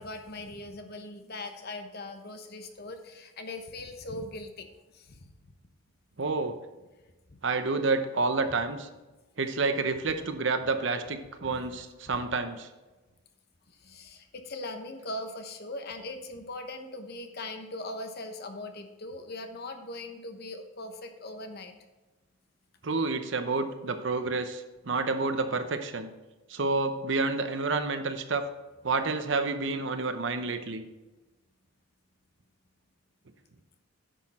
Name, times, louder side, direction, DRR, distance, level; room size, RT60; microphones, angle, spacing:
voice 1, 0.0-5.3 7.3-7.4 11.5-11.8 12.2-12.3 13.7-21.8 29.9-30.0, left 2 dB, 50° left, 6 dB, 0.9 m, -40 dB
voice 2, 6.2-6.6 7.4-8.9 9.4-12.7 22.8-26.1 26.5-28.5 28.8-30.8, right 3 dB, 60° right, 9 dB, 0.8 m, -29 dB
10.0 x 6.5 x 4.2 m, 1.1 s
head